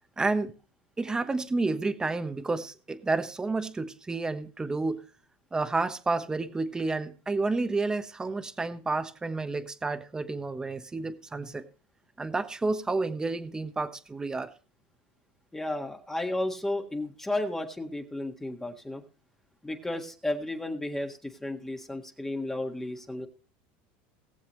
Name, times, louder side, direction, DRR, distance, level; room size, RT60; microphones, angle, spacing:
voice 1, 0.2-0.5 1.0-5.0 5.5-11.6 12.2-14.5, right 3 dB, 15° right, 1.1 m, -30 dB
voice 2, 15.5-19.0 19.6-23.3, left 1 dB, 5° left, 1.7 m, -33 dB
20.5 x 7.3 x 3.2 m
supercardioid pair, 120°, 5 cm